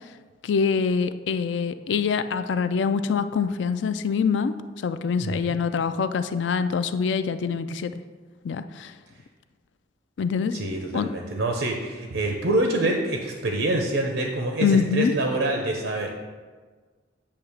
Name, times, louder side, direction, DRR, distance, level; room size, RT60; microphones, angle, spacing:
voice 1, 0.4-7.9 8.4-8.9 10.2-10.6 10.9-11.1 14.6-15.1, left 5 dB, 75° left, 11 dB, 0.4 m, -25 dB
voice 2, 5.2-5.6 10.5-16.1, right 1 dB, 90° right, 2 dB, 0.7 m, -26 dB
8.6 x 2.9 x 6.3 m, 1.5 s
head